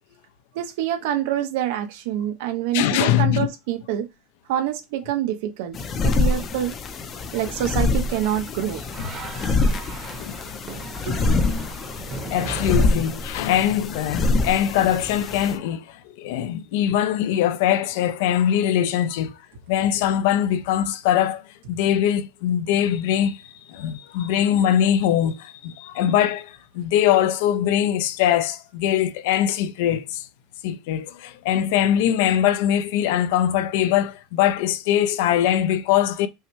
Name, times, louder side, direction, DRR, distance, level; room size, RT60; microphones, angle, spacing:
voice 1, 0.5-4.1 4.5-6.7 7.3-8.8, right 11 dB, 75° right, 0.8 m, -26 dB
voice 2, 2.7-3.5 9.0-9.3 10.2-10.4 12.3-19.4 19.7-21.4 21.7-30.3 30.6-36.3, left 10 dB, 75° left, 0.5 m, -22 dB
sound 1, 5.7-15.6, left 3 dB, 25° left, 0.6 m, -25 dB
sound 2, 7.1-13.7, right 3 dB, 30° right, 1.0 m, -39 dB
5.4 x 2.2 x 3.1 m
cardioid pair, 170°, 0 cm